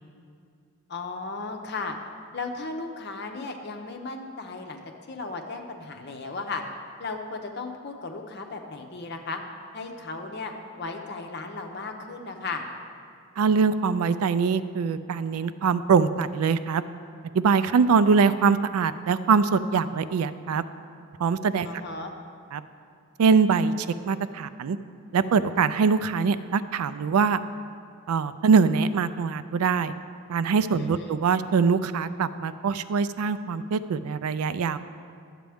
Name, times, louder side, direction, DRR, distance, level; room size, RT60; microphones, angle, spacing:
voice 1, 0.9-2.0 2.3-4.8 5.1-6.6 7.0-9.4 9.7-12.6 21.6-22.1 30.8-31.2, left 3 dB, 50° left, 3 dB, 0.7 m, -35 dB
voice 2, 13.4-16.8 17.3-20.6 21.2-21.7 22.5-22.6 23.2-24.8 25.1-27.4 28.1-29.9 30.3-34.8, right 5 dB, 85° right, 14 dB, 0.3 m, -23 dB
11.5 x 7.5 x 3.5 m, 2.4 s
head